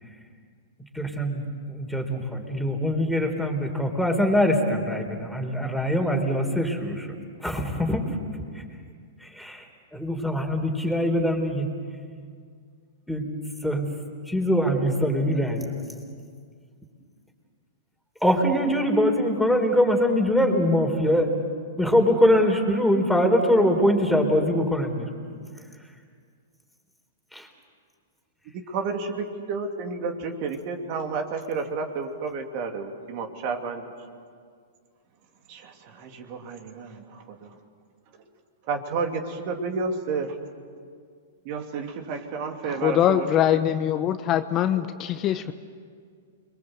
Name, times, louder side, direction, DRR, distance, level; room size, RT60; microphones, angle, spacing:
voice 1, 0.9-7.1 7.4-8.1 9.2-9.6 9.9-11.7 13.1-13.3 13.6-13.9 14.3-15.8 18.2-21.3 21.8-25.1 27.3-27.5, equal, ahead, 3 dB, 4.1 m, -23 dB
voice 2, 28.5-33.8 35.5-37.5 38.7-40.3 41.4-43.6, right 4 dB, 50° right, 4 dB, 3.0 m, -31 dB
voice 3, 42.7-45.5, left 11 dB, 35° left, 9 dB, 1.0 m, -23 dB
29.0 x 22.5 x 8.1 m, 2.1 s
hypercardioid pair, 120°, 0 cm